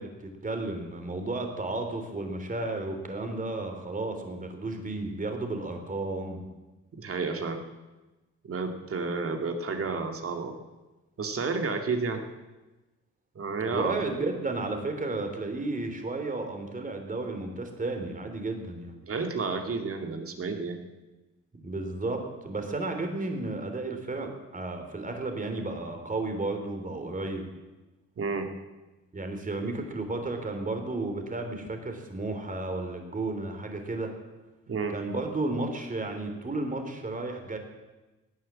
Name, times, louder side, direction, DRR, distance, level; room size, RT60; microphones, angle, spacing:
voice 1, 0.0-6.4 13.7-19.0 21.5-27.5 29.1-34.1 34.9-37.6, right 2 dB, 25° right, 5 dB, 3.4 m, -33 dB
voice 2, 6.9-7.6 8.4-10.6 11.2-12.2 13.4-14.1 19.0-20.8 28.2-28.5 34.7-34.9, right 4 dB, 45° right, 5 dB, 2.2 m, -31 dB
18.0 x 9.6 x 7.5 m, 1.1 s
cardioid pair, 90°, 30 cm